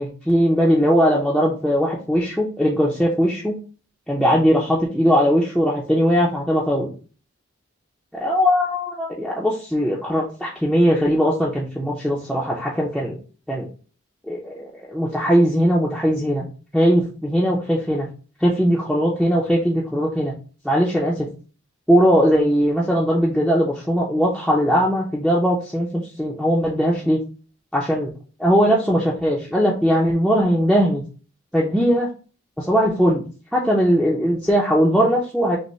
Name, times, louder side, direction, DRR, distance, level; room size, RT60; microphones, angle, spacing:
voice 1, 0.0-3.6 4.1-6.9 8.2-13.2 13.5-13.7 14.3-16.5 16.7-18.1 18.4-20.3 20.6-21.2 21.9-27.2 27.7-28.1 28.4-31.0 31.5-32.1 32.6-33.2 33.5-35.6, equal, ahead, -5 dB, 0.5 m, -19 dB
5.1 x 2.0 x 3.1 m, 0.37 s
head